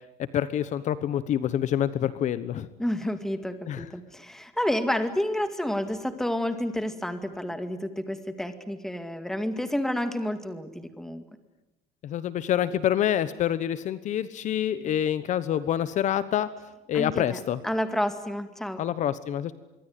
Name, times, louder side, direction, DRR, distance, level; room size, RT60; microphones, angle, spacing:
voice 1, 0.3-2.7 3.7-3.8 12.0-16.5 16.9-17.6 18.8-19.5, left 10 dB, 45° left, 15 dB, 1.1 m, -27 dB
voice 2, 2.8-11.2 16.9-18.8, left 1 dB, ahead, 9 dB, 2.1 m, -30 dB
26.0 x 23.5 x 9.5 m, 0.96 s
cardioid pair, 155°, 17 cm